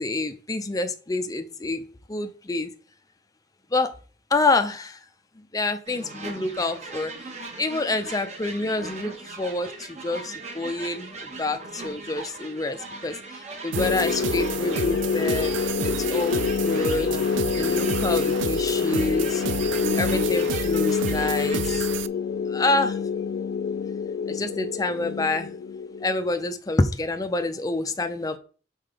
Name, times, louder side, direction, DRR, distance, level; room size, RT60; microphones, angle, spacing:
voice 1, 0.0-2.7 3.7-3.9 4.3-5.0 5.5-7.1 7.6-13.2 13.6-15.6 15.8-17.2 17.6-19.4 20.0-21.9 22.5-23.0 24.3-25.5 26.0-28.4, left 2 dB, 20° left, 7 dB, 0.6 m, -27 dB
sound 1, 5.9-21.8, right 2 dB, 40° right, 1.4 m, -38 dB
sound 2, 13.7-26.5, left 6 dB, 70° left, 0.4 m, -26 dB
sound 3, 13.7-22.1, right 8 dB, 90° right, 0.4 m, -32 dB
5.8 x 4.5 x 5.0 m, 0.38 s
head